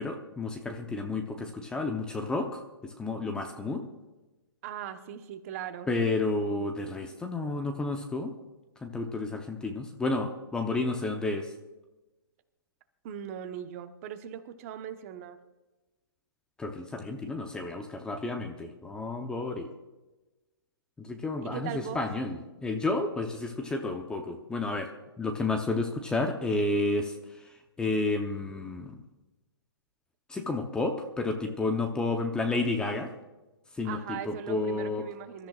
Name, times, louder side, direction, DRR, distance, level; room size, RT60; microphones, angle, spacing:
voice 1, 0.0-3.9 5.9-8.3 8.8-11.5 16.6-19.7 21.0-24.9 25.2-29.0 30.3-33.1 33.7-35.1, left 3 dB, 5° left, 4 dB, 0.8 m, -31 dB
voice 2, 4.6-5.9 13.0-15.4 21.4-22.0 33.8-35.5, right 9 dB, 35° right, 8 dB, 1.1 m, -39 dB
25.5 x 13.5 x 2.4 m, 1.1 s
hypercardioid pair, 150°, 14 cm